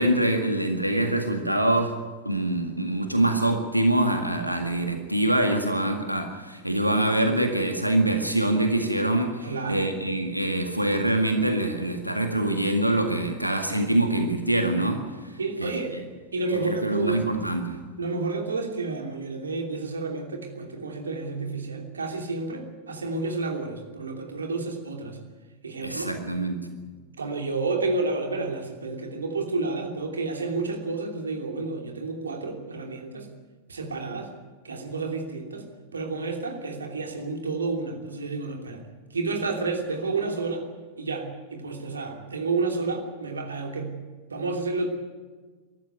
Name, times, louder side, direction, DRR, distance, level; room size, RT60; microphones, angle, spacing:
voice 1, 0.0-2.0 2.3-15.3 15.6-16.0 16.6-17.8 25.8-26.6, right 1 dB, 90° right, 5 dB, 1.9 m, -24 dB
voice 2, 9.4-9.9 15.4-16.0 16.3-17.2 18.0-25.2 25.6-26.1 26.8-33.3 33.7-34.3 34.6-35.7 35.9-38.8 39.1-40.7 41.0-43.9 44.3-44.9, right 3 dB, 75° right, 3 dB, 3.0 m, -30 dB
23.5 x 13.5 x 9.4 m, 1.4 s
figure-of-eight pair, 90°, 0 cm